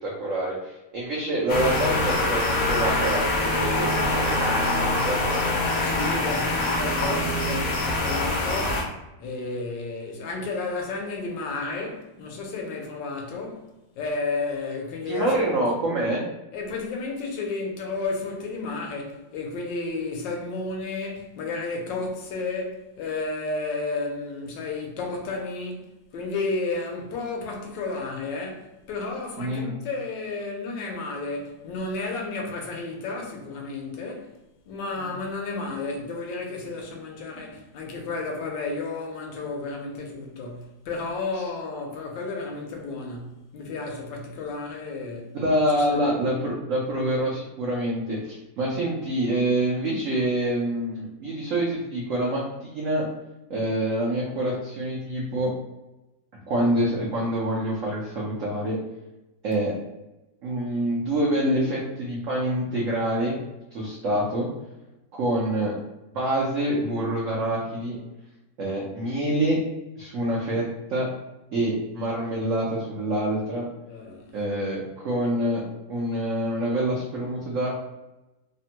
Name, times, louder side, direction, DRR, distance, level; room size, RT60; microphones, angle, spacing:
voice 1, 0.0-5.6 15.1-16.2 29.4-29.7 35.0-35.1 45.3-53.1 53.5-55.5 56.5-58.8 59.4-59.7 60.4-63.4 63.7-64.5 65.1-65.7 66.1-68.0 68.6-69.6 70.0-71.1 71.5-73.7 74.3-77.7, right 1 dB, 80° right, 0.7 m, -26 dB
sound 1, 1.5-8.8, left 2 dB, 60° left, 1.0 m, -24 dB
voice 2, 5.8-8.8 9.2-13.7 14.0-15.5 16.5-34.3 34.7-45.3 45.7-46.0 73.9-74.3, left 3 dB, 80° left, 1.3 m, -32 dB
3.3 x 2.1 x 2.8 m
omnidirectional pair, 2.0 m